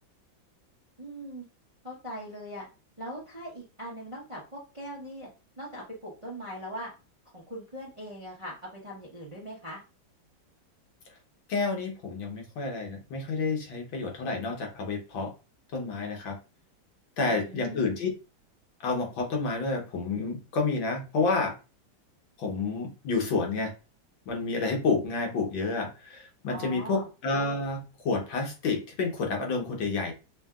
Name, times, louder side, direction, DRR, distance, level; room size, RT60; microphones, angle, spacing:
voice 1, 1.0-1.4 1.8-2.6 3.0-5.3 5.6-6.9 7.3-8.5 8.8-9.8 17.2-17.9 26.4-27.1, equal, 30° right, -4 dB, 0.6 m, -40 dB
voice 2, 11.5-15.3 15.7-16.4 17.2-18.1 18.8-21.5 22.4-23.7 24.3-30.1, left 3 dB, 80° left, 2 dB, 1.8 m, -29 dB
5.6 x 2.8 x 2.3 m, 0.31 s
omnidirectional pair, 2.1 m